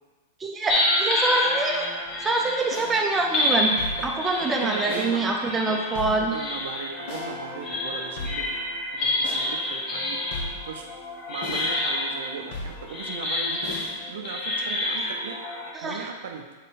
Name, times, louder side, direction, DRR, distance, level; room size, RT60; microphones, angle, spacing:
voice 1, 0.4-1.9 2.2-3.8 4.0-6.3 15.7-16.1, right 3 dB, 10° right, 1 dB, 0.6 m, -25 dB
sound 1, 0.7-15.7, left 1 dB, 25° left, 1.0 m, -29 dB
sound 2, 2.7-2.9 3.8-4.2 4.9-5.1 6.0-6.4 7.1-7.3 8.2-8.6 9.2-9.5 10.3-10.7 11.4-11.8 12.5-12.9 13.6-14.0, left 2 dB, 55° left, 1.4 m, -35 dB
voice 2, 4.4-5.3 5.6-5.8 6.2-8.5 8.9-10.2 10.6-10.9 11.3-13.8 14.1-15.4 15.8-16.5, right 6 dB, 75° right, 3 dB, 0.7 m, -38 dB
6.2 x 3.9 x 4.2 m, 1.3 s
supercardioid pair, 160°, 0 cm